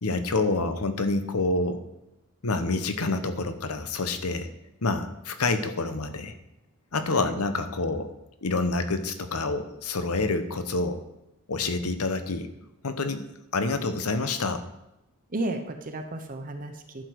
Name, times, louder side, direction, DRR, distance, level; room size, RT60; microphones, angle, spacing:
voice 1, 0.0-1.8 2.4-4.5 4.8-6.3 6.9-8.1 8.4-11.0 11.5-12.5 12.8-13.3 13.5-14.6, left 3 dB, 85° left, 9 dB, 0.9 m, -27 dB
voice 2, 15.3-17.0, right 1 dB, 40° right, 6 dB, 0.9 m, -33 dB
11.0 x 6.9 x 4.7 m, 0.90 s
head